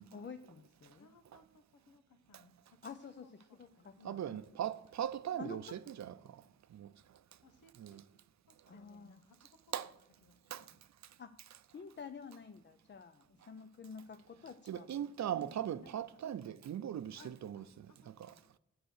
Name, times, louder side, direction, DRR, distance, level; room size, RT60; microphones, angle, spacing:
voice 1, 0.1-1.1 2.8-4.4 5.4-5.6 8.7-9.2 11.2-11.4 11.7-14.9, left 6 dB, 35° left, 0.6 m, -50 dB
voice 2, 1.0-3.0 3.2-4.3 5.3-5.4 7.4-8.0 8.5-9.6 10.2-10.8 15.3-16.2 17.2-18.4, left 3 dB, 80° left, 1.1 m, -62 dB
voice 3, 4.0-6.4 6.7-6.9 7.8-8.0 9.7-9.9 10.5-10.7 14.7-18.3, right 10 dB, 60° right, 0.6 m, -40 dB
7.8 x 7.7 x 6.4 m
cardioid pair, 60°, 31 cm